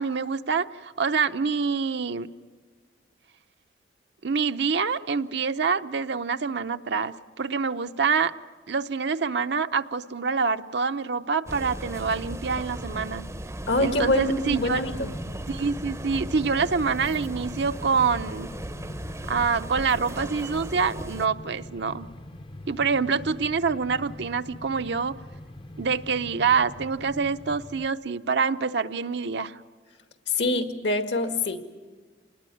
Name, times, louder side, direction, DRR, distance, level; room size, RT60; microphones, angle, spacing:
voice 1, 0.0-2.3 4.2-8.3 8.7-13.2 13.8-14.8 15.5-18.5 19.3-22.1 22.7-25.1 25.8-29.6, right 5 dB, 65° right, 9 dB, 0.7 m, -26 dB
sound 1, 11.5-21.3, right 1 dB, 15° right, 0.7 m, -37 dB
voice 2, 13.7-15.1 30.3-31.6, left 2 dB, 70° left, 7 dB, 2.0 m, -25 dB
sound 2, 14.4-27.9, left 1 dB, 30° left, 0.7 m, -42 dB
27.5 x 20.0 x 9.2 m, 1.4 s
head